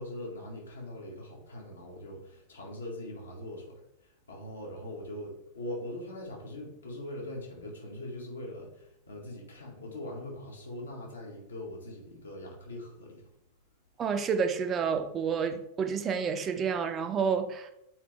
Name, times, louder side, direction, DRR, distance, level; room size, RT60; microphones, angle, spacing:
voice 1, 0.0-13.3, left 1 dB, 75° left, 1.9 m, -42 dB
voice 2, 14.0-17.7, right 6 dB, 25° right, 0.6 m, -29 dB
7.0 x 4.7 x 3.5 m
figure-of-eight pair, 90°, 0 cm